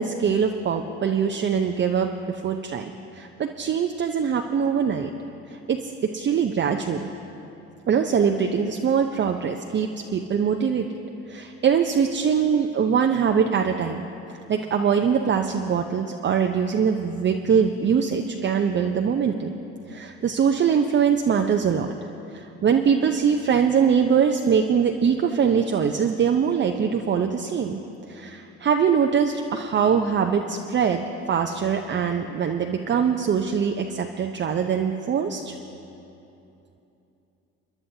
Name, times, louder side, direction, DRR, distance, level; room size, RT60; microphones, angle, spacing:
voice 1, 0.0-2.1 2.4-2.8 3.1-5.1 5.5-7.1 7.9-10.9 11.3-14.0 14.5-19.5 19.9-21.9 22.3-27.8 28.1-35.5, right 7 dB, 35° right, 3 dB, 0.7 m, -22 dB
29.5 x 10.5 x 2.8 m, 2.8 s
hypercardioid pair, 60°, 34 cm